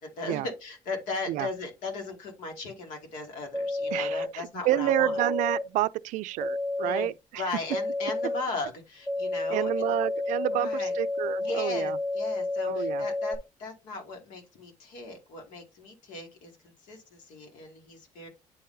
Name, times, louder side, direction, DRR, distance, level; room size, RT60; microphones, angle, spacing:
voice 1, 0.0-5.2 6.8-7.1 7.3-10.0 10.5-10.9 11.4-18.3, left 3 dB, 80° left, 2.4 m, -37 dB
sound 1, 3.5-4.3 4.9-5.6 6.4-7.1 7.7-8.4 9.1-13.4, left 2 dB, 15° left, 0.8 m, -30 dB
voice 2, 3.9-7.4 9.5-12.0 12.6-13.0, right 15 dB, 80° right, 0.4 m, -29 dB
9.8 x 3.8 x 2.7 m
cardioid pair, 175°, 13 cm